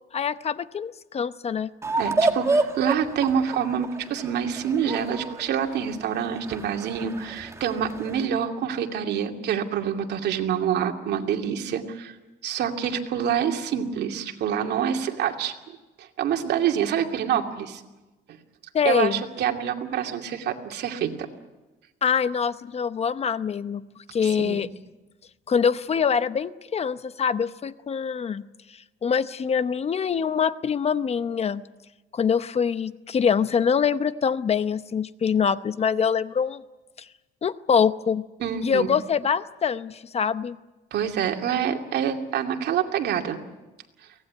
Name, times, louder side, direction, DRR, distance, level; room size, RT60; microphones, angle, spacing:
voice 1, 0.1-1.7 18.7-19.2 22.0-23.9 24.1-24.7 25.5-28.4 29.0-31.6 32.1-36.6 37.4-38.3 38.6-40.6, left 7 dB, 35° left, 14 dB, 0.8 m, -24 dB
sound 1, 1.8-8.3, right 2 dB, 15° right, 1.9 m, -29 dB
voice 2, 2.0-12.1 12.4-15.5 16.0-17.8 18.8-21.3 24.2-24.7 38.4-38.9 40.9-43.4, right 8 dB, 75° right, 3 dB, 2.5 m, -26 dB
24.0 x 18.0 x 9.5 m, 1.1 s
cardioid pair, 125°, 17 cm